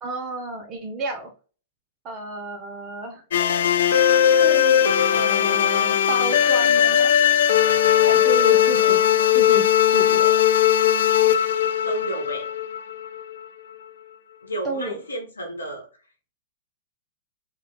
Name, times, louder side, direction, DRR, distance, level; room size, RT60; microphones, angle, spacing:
voice 1, 0.0-1.3 2.0-3.2 4.3-7.1 8.1-9.0 9.3-9.6 9.9-10.4 14.6-14.9, right 2 dB, 30° right, 2 dB, 0.7 m, -32 dB
sound 1, 3.3-13.2, left 10 dB, 70° left, 0.4 m, -18 dB
voice 2, 8.7-9.2 11.8-12.5 14.4-15.9, right 2 dB, 90° left, 3 dB, 1.0 m, -32 dB
3.2 x 2.4 x 3.4 m, 0.37 s
hypercardioid pair, 110°, 0 cm